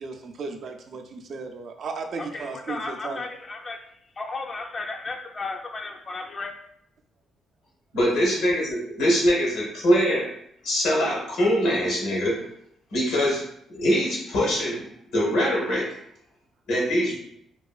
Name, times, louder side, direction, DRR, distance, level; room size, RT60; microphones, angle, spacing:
voice 1, 0.0-3.3, right 4 dB, 60° right, 4 dB, 0.4 m, -35 dB
voice 2, 2.2-6.5, left 3 dB, 35° left, 3 dB, 0.3 m, -34 dB
voice 3, 7.9-10.3 10.6-12.4 12.9-13.4 13.7-15.9 16.7-17.2, equal, 90° left, -3 dB, 1.0 m, -23 dB
2.9 x 2.4 x 2.3 m, 0.73 s
cardioid pair, 90°, 0 cm